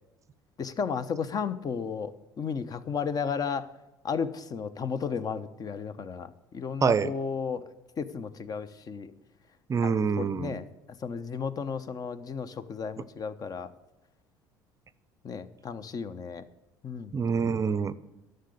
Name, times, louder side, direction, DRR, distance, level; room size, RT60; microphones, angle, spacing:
voice 1, 0.6-3.7 4.0-7.7 8.0-9.1 9.8-13.7 15.2-16.4 16.8-17.2, left 6 dB, 40° left, 13 dB, 0.9 m, -34 dB
voice 2, 6.8-7.1 9.7-10.6 17.1-17.9, right 6 dB, 30° right, 16 dB, 0.6 m, -26 dB
11.5 x 6.7 x 8.4 m, 1.0 s
hypercardioid pair, 60°, 10 cm